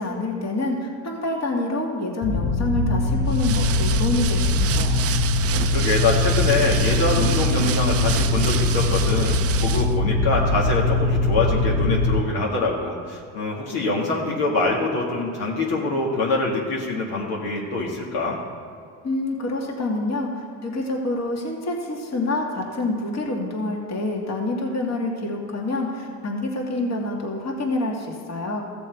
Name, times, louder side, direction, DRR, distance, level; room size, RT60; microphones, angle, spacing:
voice 1, 0.0-5.0 19.0-28.6, left 2 dB, 45° left, -1 dB, 2.3 m, -27 dB
sound 1, 2.2-12.2, left 2 dB, 25° left, 0.9 m, -22 dB
sound 2, 3.3-10.0, right 10 dB, 40° right, 0.5 m, -30 dB
voice 2, 5.6-18.4, left 3 dB, 75° left, -3 dB, 2.1 m, -24 dB
15.0 x 7.0 x 4.7 m, 2.3 s
supercardioid pair, 75°, 38 cm